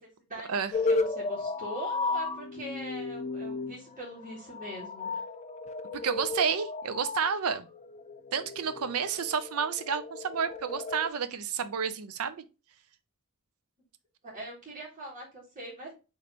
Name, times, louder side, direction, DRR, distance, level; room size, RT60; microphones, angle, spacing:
voice 1, 0.3-5.2 14.2-15.9, right 1 dB, 30° right, 1.8 m, -42 dB
sound 1, 0.7-11.1, left 3 dB, 30° left, 0.4 m, -34 dB
voice 2, 6.0-7.7 8.3-12.4, right 6 dB, 70° right, 0.5 m, -30 dB
5.0 x 3.2 x 2.9 m
head